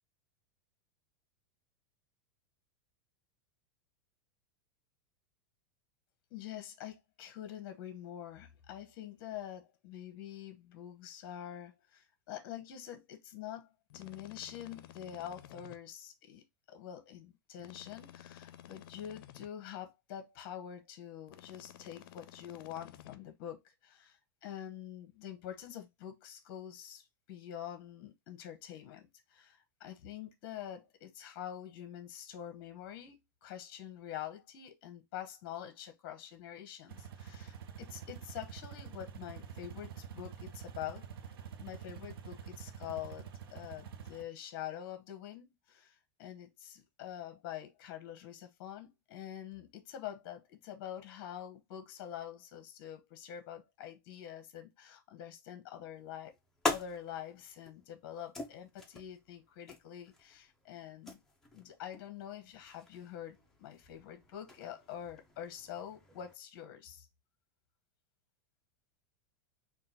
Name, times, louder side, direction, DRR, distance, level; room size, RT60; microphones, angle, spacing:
voice 1, 6.3-16.4 16.7-41.1 41.6-56.3 56.7-61.2 61.5-67.1, left 10 dB, 40° left, 0.9 m, -46 dB
sound 1, 13.9-15.8 17.6-19.5 21.3-23.2, left 12 dB, 65° left, 0.5 m, -53 dB
sound 2, 36.9-44.2, right 8 dB, 75° right, 0.6 m, -47 dB
sound 3, 55.9-66.3, left 3 dB, 5° left, 0.6 m, -44 dB
3.8 x 2.3 x 4.1 m
supercardioid pair, 170°, 12 cm